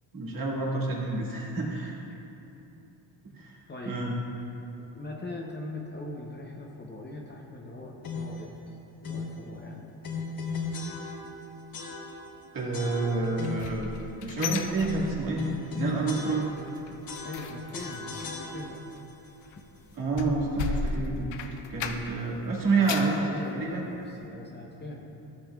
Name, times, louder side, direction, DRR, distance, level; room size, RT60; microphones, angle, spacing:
voice 1, 0.1-2.0 3.3-3.6 3.8-4.1 12.5-13.9 14.2-15.4 15.7-16.5 19.9-23.2 23.5-23.8, right 3 dB, 50° right, -4 dB, 1.8 m, -29 dB
voice 2, 3.7-4.1 4.9-8.6 9.1-9.9 17.2-18.8 22.6-25.1, left 2 dB, 25° left, -2 dB, 0.7 m, -40 dB
sound 1, 8.0-8.5 9.0-9.4 10.0-11.4 11.7-12.4 12.7-13.8 14.4-16.8 17.1-18.9, left 3 dB, 50° left, 1.0 m, -36 dB
sound 2, 13.2-15.6 15.9-16.2 16.5-22.3 22.6-23.2 23.7-23.8 24.3-24.4, left 5 dB, 80° left, 0.6 m, -36 dB
14.5 x 7.0 x 2.3 m, 2.9 s
cardioid pair, 145°, 45 cm